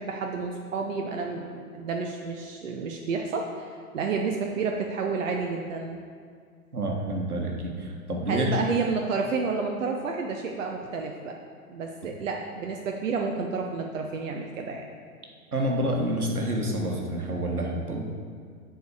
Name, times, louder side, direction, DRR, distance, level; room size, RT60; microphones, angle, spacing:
voice 1, 0.0-6.0 8.3-11.3 11.7-14.8, right 4 dB, 60° right, 2 dB, 0.9 m, -30 dB
voice 2, 6.7-8.5 15.5-18.0, right 1 dB, 80° right, 0 dB, 1.6 m, -28 dB
7.9 x 4.8 x 7.0 m, 2.1 s
figure-of-eight pair, 105°, 44 cm